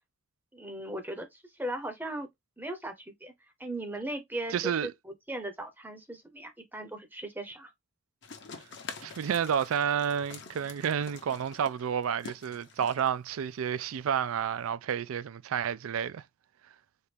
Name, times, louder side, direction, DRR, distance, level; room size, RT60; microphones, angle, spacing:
voice 1, 0.5-2.3 2.6-3.3 3.6-7.7, right 1 dB, 10° right, 0.7 m, -38 dB
voice 2, 4.5-4.9 9.0-16.2, right 8 dB, 75° right, 0.4 m, -30 dB
sound 1, 8.2-14.7, left 5 dB, 55° left, 0.8 m, -47 dB
4.3 x 2.5 x 3.3 m
head